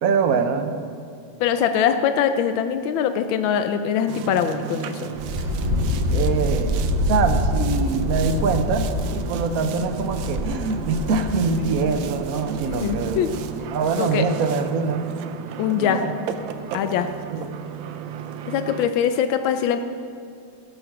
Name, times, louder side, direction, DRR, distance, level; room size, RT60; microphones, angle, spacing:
voice 1, 0.0-0.7 6.1-6.8 7.1-13.2 13.7-15.1 15.8-16.1 17.3-17.5, right 5 dB, 60° right, 7 dB, 1.1 m, -24 dB
voice 2, 1.4-5.1 12.6-13.3 14.0-14.3 15.6-16.0 16.7-17.1 18.5-19.8, left 8 dB, 90° left, 9 dB, 1.4 m, -22 dB
Boat Water vehicle, 4.1-18.9, right 9 dB, 85° right, 1.4 m, -34 dB
Wind, 5.1-13.3, left 2 dB, 25° right, 2.7 m, -26 dB
16.0 x 7.0 x 6.0 m, 2.4 s
omnidirectional pair, 2.1 m